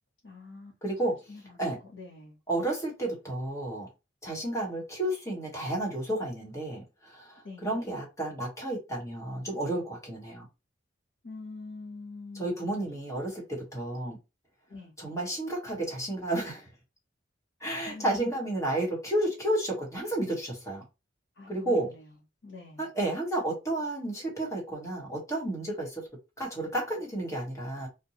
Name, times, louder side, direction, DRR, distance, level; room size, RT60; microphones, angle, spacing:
voice 1, 0.2-0.7 1.3-2.4 7.4-7.8 11.2-12.5 14.7-14.9 17.9-18.3 21.4-22.1 22.4-22.9, left 3 dB, 80° left, 0.9 m, -44 dB
voice 2, 0.8-1.2 1.6-1.8 2.5-3.9 4.2-10.5 12.3-14.2 15.0-16.7 17.6-20.8 21.5-21.9 22.8-26.0 26.4-27.9, right 1 dB, 15° left, 1.2 m, -31 dB
2.6 x 2.2 x 2.9 m
head